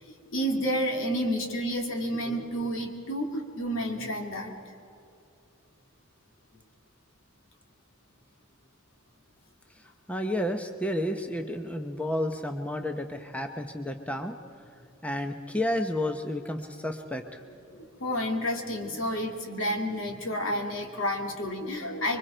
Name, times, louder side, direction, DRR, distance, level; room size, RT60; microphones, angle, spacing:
voice 1, 0.3-4.5 17.7-22.2, equal, 70° left, 2 dB, 2.7 m, -30 dB
voice 2, 10.1-14.4 15.0-17.4, left 1 dB, 5° left, 5 dB, 0.9 m, -31 dB
26.0 x 24.0 x 4.5 m, 2.7 s
head